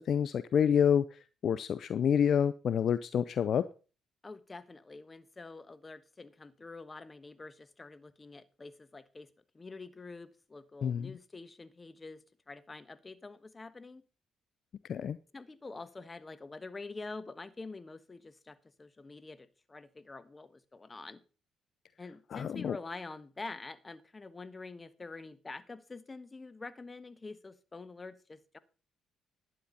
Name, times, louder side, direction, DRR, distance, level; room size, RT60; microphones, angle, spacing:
voice 1, 0.1-3.6 10.8-11.1 14.9-15.2 22.3-22.8, left 8 dB, 60° left, 0.5 m, -28 dB
voice 2, 4.2-14.0 15.3-21.2 22.0-28.6, left 3 dB, 30° left, 1.3 m, -46 dB
12.0 x 9.3 x 4.1 m
hypercardioid pair, 50°, 0 cm